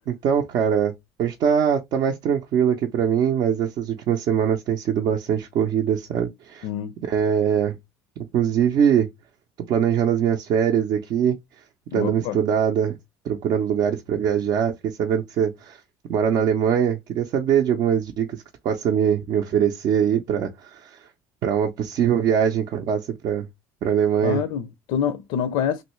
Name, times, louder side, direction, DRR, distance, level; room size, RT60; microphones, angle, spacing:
voice 1, 0.1-0.9 1.2-6.7 7.0-7.8 8.3-9.1 9.7-11.4 11.9-13.0 13.2-15.8 16.1-21.1 21.4-23.5 23.8-24.4, right 8 dB, 55° right, 0.5 m, -22 dB
voice 2, 6.6-6.9 11.9-12.4 24.2-25.8, left 8 dB, 70° left, 0.4 m, -26 dB
3.1 x 2.6 x 3.0 m
supercardioid pair, 95°, 8 cm